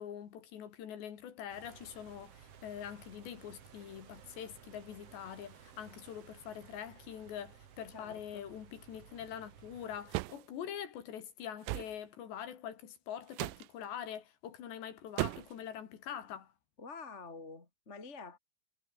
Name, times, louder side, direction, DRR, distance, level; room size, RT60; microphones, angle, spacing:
voice 1, 0.0-16.5, left 9 dB, 80° left, 5.0 m, -44 dB
sound 1, 1.5-10.3, right 8 dB, 45° right, 2.3 m, -57 dB
voice 2, 7.9-8.5 16.8-18.4, left 4 dB, 20° left, 2.9 m, -48 dB
sound 2, 10.1-10.4 11.6-11.9 13.3-13.7 15.2-15.6, right 25 dB, 90° right, 2.8 m, -36 dB
omnidirectional pair, 4.9 m